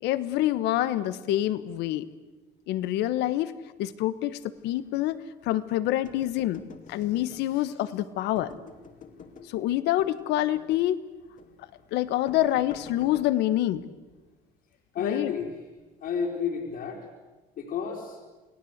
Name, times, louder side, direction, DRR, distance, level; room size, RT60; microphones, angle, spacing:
voice 1, 0.0-2.0 2.7-3.5 3.8-6.6 6.9-8.5 9.5-11.0 11.9-13.8 15.0-15.3, left 14 dB, 90° left, 14 dB, 1.2 m, -26 dB
sound 1, 6.1-7.8 8.4-9.6 10.0-10.9 11.4-11.6 12.3-13.3, left 6 dB, 50° left, 2.3 m, -48 dB
voice 2, 14.9-15.5 16.0-17.1 17.6-18.2, left 6 dB, 65° left, -2 dB, 4.0 m, -31 dB
28.5 x 18.0 x 8.1 m, 1.2 s
cardioid pair, 110°, 17 cm